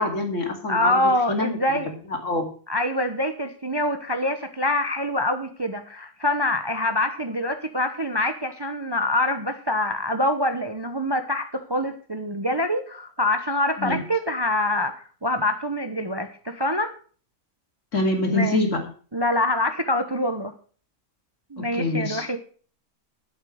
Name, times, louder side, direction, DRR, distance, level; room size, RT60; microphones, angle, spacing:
voice 1, 0.0-1.0 1.3-2.5 13.8-14.0 17.9-18.9 21.6-22.3, left 2 dB, 55° left, 3 dB, 2.9 m, -26 dB
voice 2, 0.7-1.9 2.7-16.9 18.2-18.6 19.1-20.5 21.5-22.4, left 1 dB, 20° right, 8 dB, 0.9 m, -25 dB
11.5 x 8.2 x 6.4 m, 0.41 s
omnidirectional pair, 1.5 m